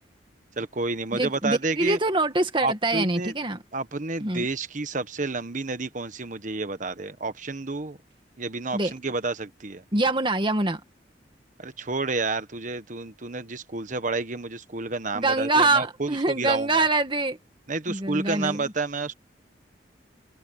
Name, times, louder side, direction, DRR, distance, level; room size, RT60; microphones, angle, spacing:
voice 1, 0.6-2.0 2.6-3.3 3.7-8.0 8.4-9.8 11.6-16.9 17.7-19.1, right 3 dB, 45° right, 1.2 m, -30 dB
voice 2, 1.1-3.6 4.2-4.5 8.7-8.9 9.9-10.8 15.1-17.4 17.9-18.6, right 2 dB, 25° right, 2.0 m, -24 dB
head